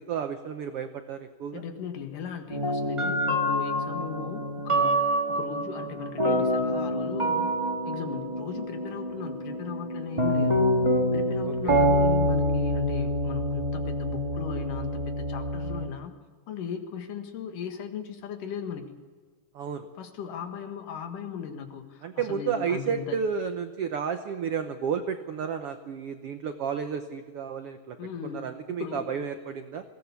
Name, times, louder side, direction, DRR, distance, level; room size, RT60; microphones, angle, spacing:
voice 1, 0.0-1.6 11.6-11.8 19.5-19.9 22.0-28.0 28.3-29.8, right 7 dB, 85° right, 8 dB, 1.3 m, -32 dB
voice 2, 1.5-7.5 7.8-10.6 11.1-16.1 16.5-19.0 20.0-23.2 28.0-29.1, left 7 dB, 70° left, 5 dB, 3.3 m, -38 dB
sound 1, 2.5-15.9, equal, 20° right, 0.7 m, -26 dB
21.5 x 17.0 x 7.1 m, 1.5 s
omnidirectional pair, 4.0 m